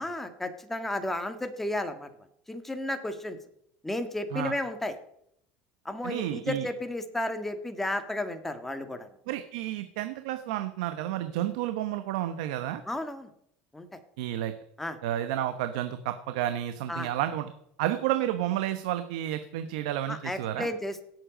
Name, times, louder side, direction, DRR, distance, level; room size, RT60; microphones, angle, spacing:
voice 1, 0.0-2.1 2.5-3.4 3.8-5.0 5.9-9.1 12.9-13.3 13.7-13.9 14.8-15.0 16.9-17.1 20.1-21.0, left 1 dB, 5° left, 7 dB, 1.7 m, -33 dB
voice 2, 6.0-6.7 9.3-12.8 14.2-14.5 15.0-17.5 17.8-20.7, right 12 dB, 80° right, 9 dB, 0.9 m, -31 dB
17.0 x 7.7 x 5.1 m, 0.73 s
supercardioid pair, 115°, 4 cm